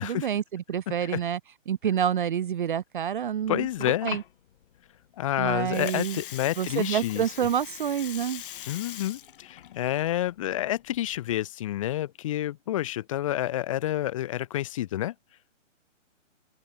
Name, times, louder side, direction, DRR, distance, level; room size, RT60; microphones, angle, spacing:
voice 1, 0.0-1.4 1.7-4.2 5.4-6.2 6.6-8.4, right 9 dB, 40° right, 0.7 m, -28 dB
Water, 3.4-11.4, left 11 dB, 45° left, 3.3 m, -42 dB
voice 2, 3.5-4.2 5.2-7.2 8.7-15.1, left 13 dB, 25° left, 0.9 m, -29 dB
open air
hypercardioid pair, 155°, 38 cm